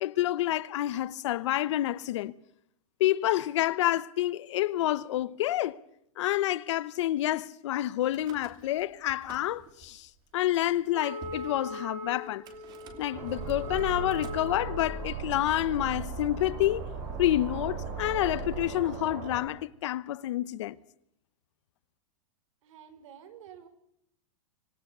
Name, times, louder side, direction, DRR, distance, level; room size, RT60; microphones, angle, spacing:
voice 1, 0.0-2.3 3.0-5.8 6.2-12.4 13.0-16.9 17.2-20.8, left 14 dB, 55° left, 0.9 m, -28 dB
Car / Engine starting / Idling, 8.0-8.8 9.1-9.9 10.5-10.6 10.8-10.9 11.2-11.5 12.5-18.6, right 4 dB, 25° right, 2.8 m, -39 dB
Wind instrument woodwind instrument, 10.9-15.1, left 2 dB, 80° right, 5.2 m, -40 dB
sound 1, 13.1-19.4, right 5 dB, 40° right, 7.3 m, -41 dB
voice 2, 22.6-23.7, right 9 dB, 60° right, 4.5 m, -50 dB
26.0 x 17.5 x 6.8 m
supercardioid pair, 170°, 18 cm